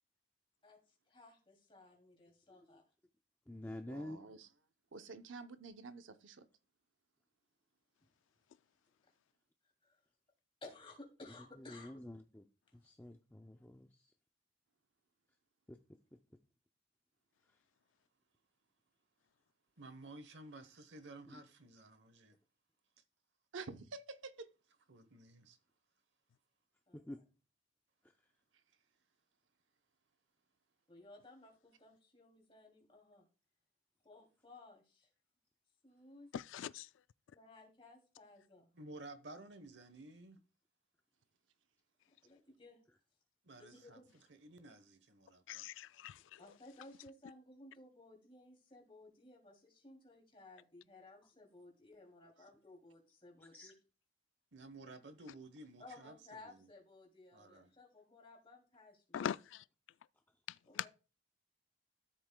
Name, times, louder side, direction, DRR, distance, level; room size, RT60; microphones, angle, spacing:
voice 1, 1.1-2.8 9.8-10.0 10.6-12.0 26.9-27.2 30.9-33.3 34.0-35.1 35.8-36.3 37.3-38.7 42.2-42.8 43.6-44.1 44.7-44.8 46.4-53.7 55.8-59.2 60.7-60.9, left 2 dB, 30° left, 2.7 m, -58 dB
voice 2, 2.5-2.8 3.5-4.2 11.7-12.4 12.8-14.1 15.7-15.8 21.3-21.4 26.9-27.2 53.5-53.7, left 1 dB, 10° left, 0.5 m, -48 dB
voice 3, 3.9-4.5 4.9-6.5 23.5-24.5, right 4 dB, 90° right, 0.7 m, -49 dB
voice 4, 19.8-22.4 24.9-25.6 38.7-40.4 43.4-44.0 44.3-45.6 54.5-56.7 57.3-57.7, right 2 dB, 65° right, 1.0 m, -54 dB
voice 5, 36.3-36.9 45.5-46.4 59.1-59.6 60.8-60.9, left 9 dB, 80° left, 0.3 m, -41 dB
13.5 x 7.7 x 2.2 m
head